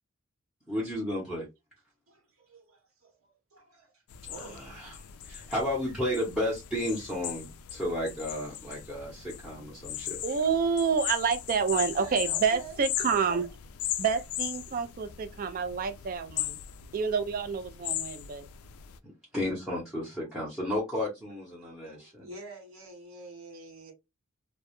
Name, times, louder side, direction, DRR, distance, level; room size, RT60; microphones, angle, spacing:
voice 1, 0.7-1.5 4.3-10.2 19.3-22.2, left 1 dB, ahead, 0.7 m, -33 dB
voice 2, 2.5-3.1 3.5-3.9 4.3-4.6 10.9-11.0 11.7-12.8 13.1-13.5 16.1-16.2 21.9-23.9, right 2 dB, 70° right, 0.9 m, -46 dB
sound 1, 4.1-19.0, left 12 dB, 80° left, 0.3 m, -38 dB
voice 3, 10.2-13.4 14.0-16.6 16.9-18.5, right 6 dB, 40° right, 0.3 m, -28 dB
2.2 x 2.0 x 2.9 m
head